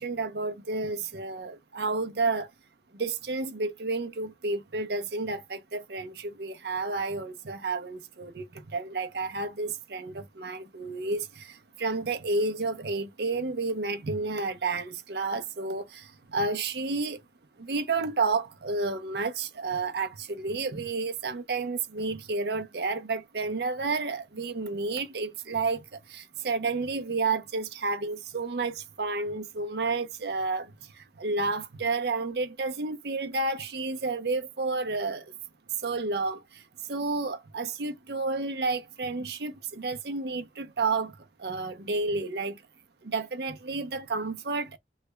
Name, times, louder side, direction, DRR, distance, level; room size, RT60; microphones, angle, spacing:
voice 1, 0.0-2.5 2.9-8.5 8.7-17.2 17.6-25.8 26.1-30.7 31.2-35.2 35.8-36.4 36.9-41.1 41.4-42.6 43.0-44.8, right 3 dB, 65° right, 0.7 m, -31 dB
3.2 x 2.2 x 3.2 m
head